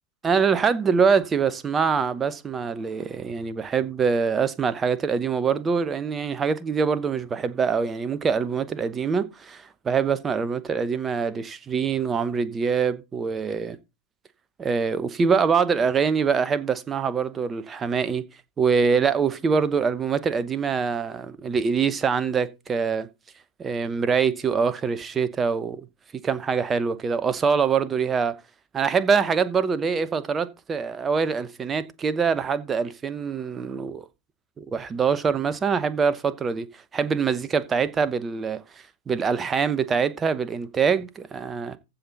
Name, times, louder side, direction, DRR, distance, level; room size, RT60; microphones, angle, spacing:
voice 1, 0.2-13.8 14.6-18.2 18.6-23.1 23.6-25.9 26.2-28.4 28.7-34.0 34.6-36.7 36.9-38.6 39.1-41.8, right 6 dB, 20° right, 0.9 m, -24 dB
15.0 x 5.7 x 3.9 m
figure-of-eight pair, 90°, 0 cm